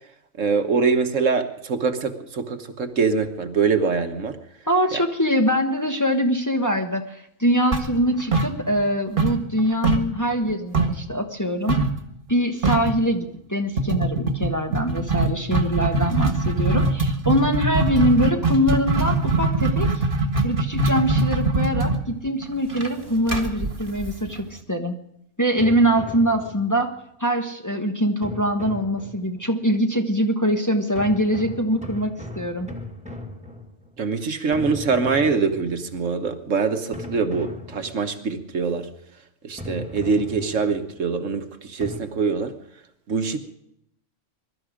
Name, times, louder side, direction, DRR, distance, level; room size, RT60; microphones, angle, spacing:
voice 1, 0.4-4.4 4.9-5.0 34.0-38.9 39.4-42.5 43.1-43.4, right 5 dB, 70° right, 7 dB, 1.6 m, -24 dB
voice 2, 4.7-11.8 12.3-19.9 20.4-25.0 25.4-26.9 27.2-32.7, equal, 15° left, 3 dB, 1.2 m, -23 dB
sound 1, 7.7-8.9 9.2-11.1 11.7-12.0 12.3-12.4 12.6-13.0 13.8-24.6, right 3 dB, 40° right, 1.8 m, -22 dB
sound 2, 25.6-27.0 28.2-29.5 31.0-34.0 34.5-36.0 36.9-38.3 39.6-41.0 41.8-42.0, left 1 dB, 5° right, 1.9 m, -38 dB
22.0 x 12.5 x 5.1 m, 0.76 s
omnidirectional pair, 1.4 m